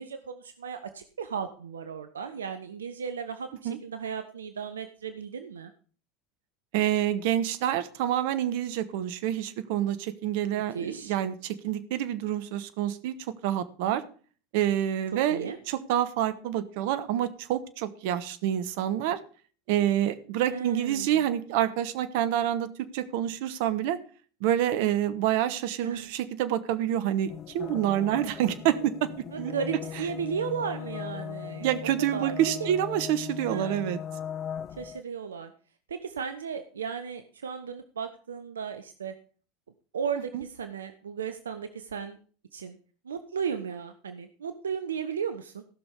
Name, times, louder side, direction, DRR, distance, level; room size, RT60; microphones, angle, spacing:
voice 1, 0.0-5.7 10.7-11.1 15.3-15.6 20.5-21.2 25.8-26.1 29.3-32.3 32.6-32.7 33.5-33.8 34.8-35.5 35.9-39.1 39.9-42.2 42.5-42.8 43.0-45.6, right 7 dB, 85° right, 9 dB, 0.7 m, -35 dB
voice 2, 6.7-13.2 13.4-14.0 14.5-19.2 19.7-24.0 24.4-29.5 31.6-34.0 40.3-40.4, right 11 dB, 65° right, 13 dB, 1.0 m, -27 dB
sound 1, 27.3-35.0, left 8 dB, 40° left, 0.5 m, -39 dB
15.5 x 6.2 x 5.2 m, 0.41 s
hypercardioid pair, 80°, 0 cm